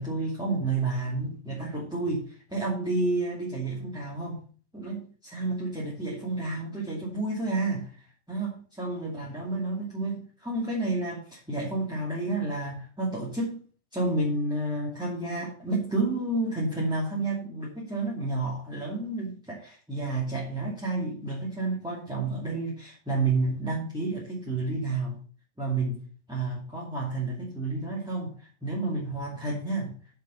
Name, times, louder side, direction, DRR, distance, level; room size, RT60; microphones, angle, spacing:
voice 1, 0.0-4.4 4.7-8.0 8.3-13.6 13.9-25.2 25.6-26.0 26.3-30.0, right 2 dB, 5° right, -6 dB, 2.6 m, -30 dB
8.1 x 7.0 x 5.6 m, 0.40 s
omnidirectional pair, 1.2 m